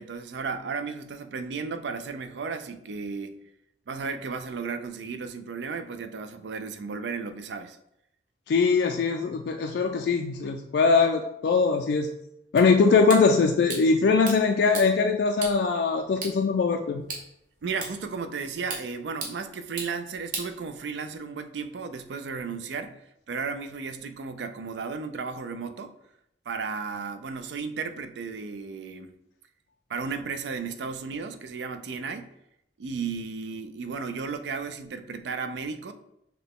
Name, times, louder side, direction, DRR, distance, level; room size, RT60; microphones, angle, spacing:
voice 1, 0.0-3.4 3.9-7.8 17.6-23.0 23.3-25.9 26.5-29.1 29.9-32.3 32.8-35.9, right 5 dB, 75° right, 10 dB, 0.4 m, -34 dB
voice 2, 8.5-12.1 12.5-17.0, left 4 dB, 65° left, 4 dB, 0.3 m, -22 dB
sound 1, 12.6-21.2, right 3 dB, 50° right, 1.0 m, -41 dB
5.7 x 2.2 x 3.6 m, 0.81 s
head